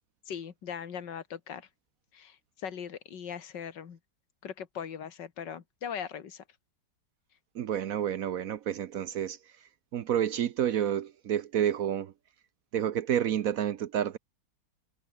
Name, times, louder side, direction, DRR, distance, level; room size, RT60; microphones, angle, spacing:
voice 1, 0.3-1.7 2.1-4.0 4.4-6.4, left 8 dB, 80° left, 2.4 m, -40 dB
voice 2, 7.5-9.4 9.9-12.1 12.7-14.2, right 10 dB, 60° right, 1.0 m, -29 dB
omnidirectional pair, 1.9 m